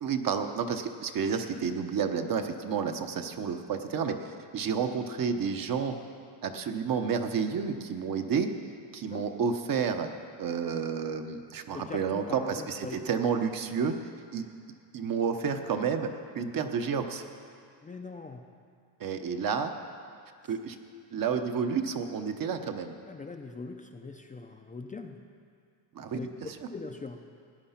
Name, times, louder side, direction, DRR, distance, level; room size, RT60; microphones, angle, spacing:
voice 1, 0.0-5.9 6.4-8.5 8.9-10.1 10.4-13.9 14.3-14.4 14.9-16.1 16.3-17.2 19.0-19.7 20.5-20.8 21.1-22.9 25.9-26.2, right 6 dB, 45° right, 6 dB, 1.0 m, -30 dB
voice 2, 11.7-13.0 17.8-18.4 23.1-25.2 26.1-26.3 26.7-27.2, left 3 dB, 15° left, 3 dB, 0.6 m, -41 dB
17.0 x 10.0 x 5.8 m, 2.3 s
cardioid pair, 120°, 48 cm